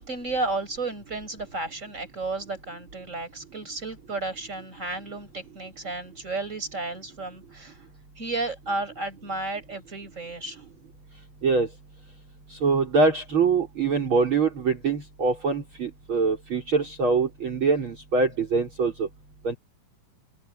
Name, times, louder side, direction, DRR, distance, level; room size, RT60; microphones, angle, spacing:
voice 1, 0.0-7.8 8.2-10.6, right 2 dB, 20° right, 7.7 m, -33 dB
voice 2, 12.5-19.1 19.4-19.6, right 4 dB, 35° right, 5.3 m, -24 dB
omnidirectional pair, 4.2 m